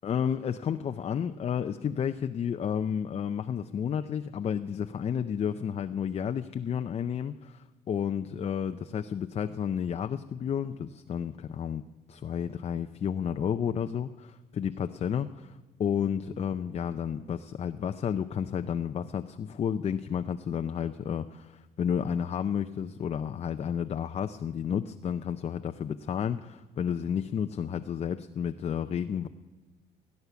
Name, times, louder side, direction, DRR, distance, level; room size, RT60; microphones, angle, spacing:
voice 1, 0.0-11.8 12.1-29.3, left 8 dB, 35° left, 8 dB, 0.5 m, -31 dB
17.5 x 9.7 x 6.9 m, 1.3 s
cardioid pair, 110°, 17 cm